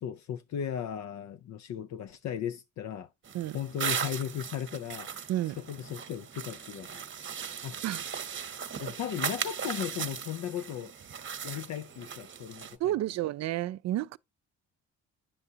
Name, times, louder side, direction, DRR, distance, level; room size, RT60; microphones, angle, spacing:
voice 1, 0.0-3.1 3.5-5.1 5.6-7.0 7.6-7.8 8.8-10.9 11.4-12.9, left 9 dB, 65° left, 0.6 m, -36 dB
sound 1, 3.2-12.8, right 7 dB, 40° right, 1.0 m, -38 dB
voice 2, 12.8-14.2, right 13 dB, 60° right, 0.4 m, -30 dB
9.7 x 6.8 x 2.8 m
cardioid pair, 90°, 30 cm